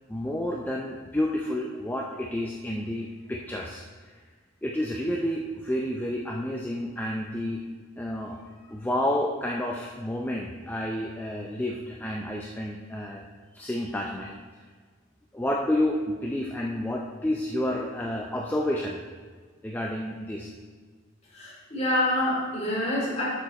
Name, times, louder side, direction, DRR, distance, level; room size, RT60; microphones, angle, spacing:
voice 1, 0.1-3.8 4.6-7.6 8.0-8.4 8.7-13.2 13.5-14.3 15.3-19.0 19.6-20.5, left 1 dB, 10° left, -1 dB, 0.5 m, -30 dB
voice 2, 21.4-23.3, left 1 dB, 30° left, -5 dB, 2.7 m, -26 dB
12.0 x 5.0 x 4.3 m, 1.5 s
head